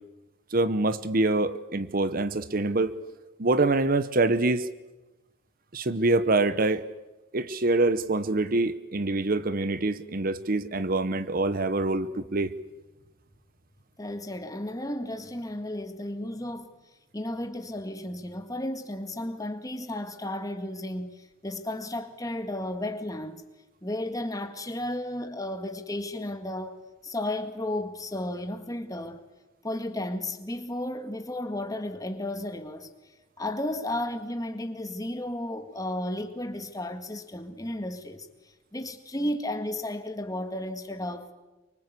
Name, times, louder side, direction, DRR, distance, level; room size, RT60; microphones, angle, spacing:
voice 1, 0.5-2.9 3.4-4.7 5.7-6.8 7.3-12.5, right 2 dB, 50° right, 0.9 m, -25 dB
voice 2, 14.0-16.7 17.1-23.4 23.8-26.8 27.0-29.3 29.6-32.9 33.4-38.3 38.7-41.3, left 1 dB, 20° left, 1.9 m, -33 dB
24.5 x 24.5 x 8.3 m
head